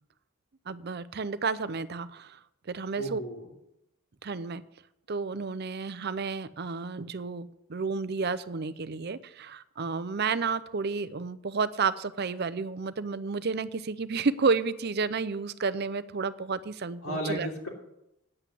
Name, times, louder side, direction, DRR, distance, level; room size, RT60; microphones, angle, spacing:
voice 1, 0.7-2.4 2.7-3.2 4.2-4.6 5.1-17.5, right 4 dB, 50° right, 14 dB, 0.6 m, -31 dB
voice 2, 3.0-3.4 17.0-17.7, equal, 80° left, -2 dB, 3.2 m, -33 dB
9.8 x 8.0 x 8.3 m, 0.85 s
head